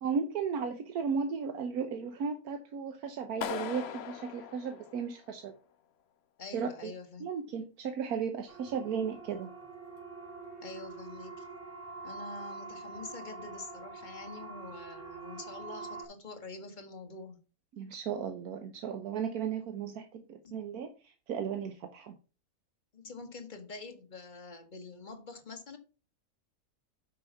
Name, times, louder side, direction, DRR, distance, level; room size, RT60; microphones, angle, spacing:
voice 1, 0.0-5.5 6.5-6.9 7.2-9.5 17.7-22.2, right 6 dB, 75° right, 1.3 m, -35 dB
Clapping, 3.4-5.5, left 8 dB, 55° left, 0.8 m, -39 dB
voice 2, 6.4-7.3 10.6-11.5 12.0-17.4 20.4-20.5 22.9-25.8, left 3 dB, 30° left, 1.5 m, -46 dB
Siren, 8.5-16.1, right 4 dB, 50° right, 3.8 m, -45 dB
8.5 x 5.5 x 5.6 m
omnidirectional pair, 1.6 m